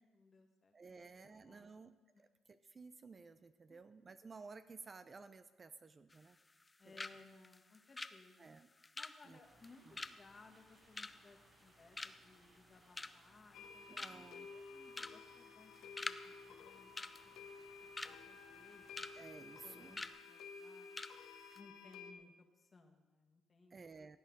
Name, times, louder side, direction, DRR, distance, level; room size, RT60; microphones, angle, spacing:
voice 1, 0.0-1.8 2.1-2.2 3.7-3.8 6.8-8.5 8.9-17.5 17.8-19.1 19.6-20.0 20.3-20.9 21.5-23.8, left 3 dB, 35° left, 4 dB, 1.7 m, -63 dB
voice 2, 0.7-6.4 6.8-7.1 8.4-8.7 9.2-9.4 9.8-10.0 13.9-14.5 19.1-20.0 23.7-24.2, right 4 dB, 35° right, 11 dB, 0.6 m, -55 dB
sound 1, 6.1-6.7 7.0-7.2 7.4-11.7 12.0-12.4 12.7-13.3 13.7-13.8 14.0-14.4 14.9-15.2 15.5-16.2 16.5-16.6 17.0-18.2 18.6-19.1 19.4-19.6 20.0-20.2 20.6-20.7 21.0-21.2 21.4-21.6, left 2 dB, 20° left, 0.5 m, -46 dB
sound 2, 9.4-20.1, right 2 dB, 55° right, 4.8 m, -69 dB
sound 3, 13.5-22.1, left 5 dB, 85° left, 0.8 m, -54 dB
16.0 x 9.0 x 4.0 m, 1.2 s
cardioid pair, 90°, 0 cm